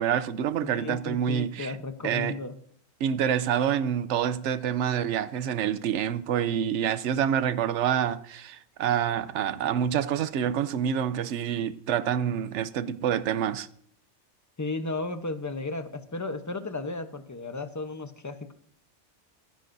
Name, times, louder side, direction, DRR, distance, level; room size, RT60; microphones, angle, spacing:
voice 1, 0.0-1.7 2.0-2.3 3.0-13.7, right 9 dB, 75° right, 1.0 m, -27 dB
voice 2, 0.6-2.5 14.6-18.5, left 3 dB, 15° left, 0.8 m, -34 dB
23.5 x 9.9 x 2.7 m
omnidirectional pair, 1.2 m